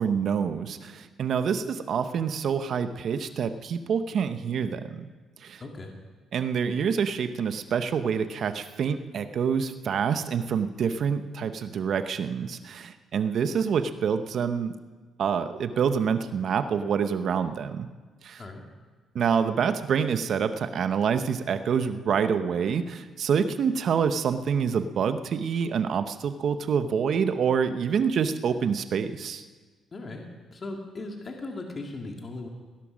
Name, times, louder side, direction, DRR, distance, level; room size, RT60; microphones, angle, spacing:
voice 1, 0.0-5.1 5.4-5.6 6.3-14.7 15.2-17.9 18.2-18.4 19.1-29.4, right 7 dB, 60° right, 10 dB, 0.9 m, -27 dB
voice 2, 5.6-5.9 18.4-18.6 29.9-30.3 30.5-32.5, left 2 dB, 40° left, 2 dB, 2.1 m, -38 dB
17.5 x 11.5 x 6.3 m, 1.3 s
cardioid pair, 90°, 0 cm